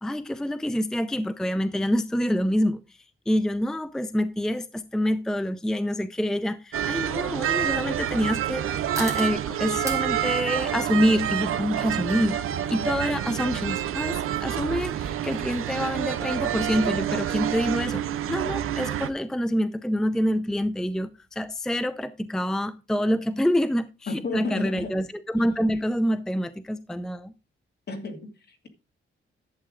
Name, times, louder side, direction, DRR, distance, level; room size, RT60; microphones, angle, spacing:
voice 1, 0.0-2.8 3.3-12.4 12.7-18.0 18.3-27.3, equal, 5° left, 0.5 m, -26 dB
sound 1, 3.3-20.0, right 3 dB, 15° right, 2.9 m, -46 dB
sound 2, 6.7-19.1, right 10 dB, 85° right, 0.9 m, -28 dB
voice 2, 24.1-25.0 27.9-28.7, left 3 dB, 50° left, 2.3 m, -32 dB
11.5 x 8.1 x 3.7 m
cardioid pair, 125°, 21 cm